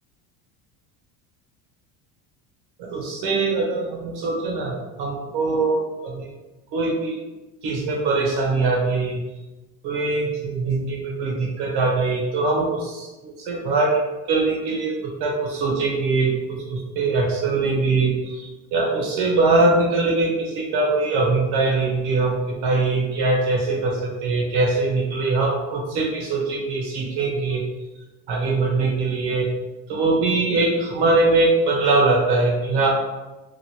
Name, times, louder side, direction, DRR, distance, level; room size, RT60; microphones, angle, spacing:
voice 1, 2.8-6.3 6.7-7.2 7.6-9.2 9.8-14.0 14.3-27.6 28.3-29.5 29.9-32.9, right 3 dB, 65° right, -1 dB, 1.0 m, -22 dB
3.0 x 2.5 x 2.8 m, 1.1 s
cardioid pair, 140°, 43 cm